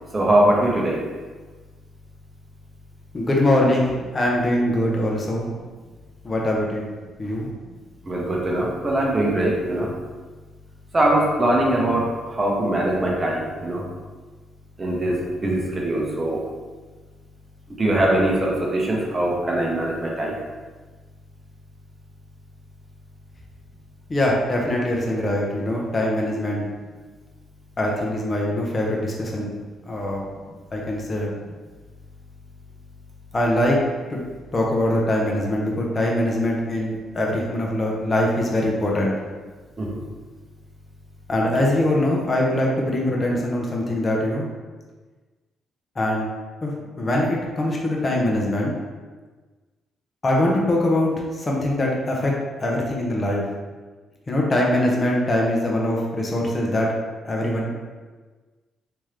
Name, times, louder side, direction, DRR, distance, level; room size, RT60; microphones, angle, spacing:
voice 1, 0.1-1.0 8.1-9.9 10.9-13.9 14.8-16.4 17.7-20.4 39.8-40.0, right 1 dB, 30° right, -2 dB, 0.8 m, -22 dB
voice 2, 3.1-5.5 6.2-6.8 7.2-7.5 24.1-26.7 27.8-29.5 29.9-30.2 30.7-31.3 33.3-33.8 34.1-34.2 34.5-39.1 41.3-44.5 46.0-46.3 46.6-48.7 50.2-52.3 52.6-53.4 54.3-56.9 57.2-57.8, left 1 dB, 30° left, -2 dB, 0.8 m, -22 dB
3.6 x 2.9 x 3.2 m, 1.4 s
cardioid pair, 90°, 0 cm